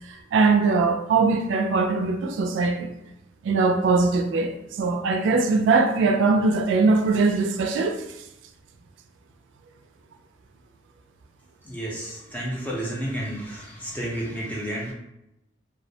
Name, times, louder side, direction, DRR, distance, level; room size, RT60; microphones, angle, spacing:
voice 1, 0.3-2.9 3.4-8.0, right 4 dB, 80° right, 0.3 m, -21 dB
voice 2, 11.6-14.9, right 1 dB, 10° left, 0.5 m, -31 dB
2.3 x 2.0 x 2.7 m
head